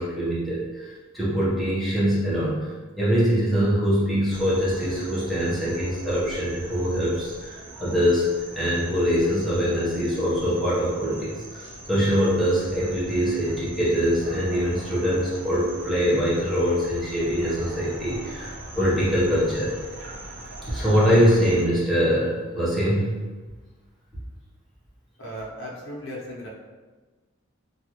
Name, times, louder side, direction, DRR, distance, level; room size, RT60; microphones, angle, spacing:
voice 1, 0.0-2.7 3.0-8.3 8.5-11.6 11.9-19.7 20.7-23.1, equal, ahead, -9 dB, 0.8 m, -23 dB
sound 1, 4.3-21.6, right 2 dB, 65° right, 0.5 m, -41 dB
voice 2, 25.2-26.5, equal, 80° left, -5 dB, 0.8 m, -36 dB
2.7 x 2.4 x 2.9 m, 1.3 s
head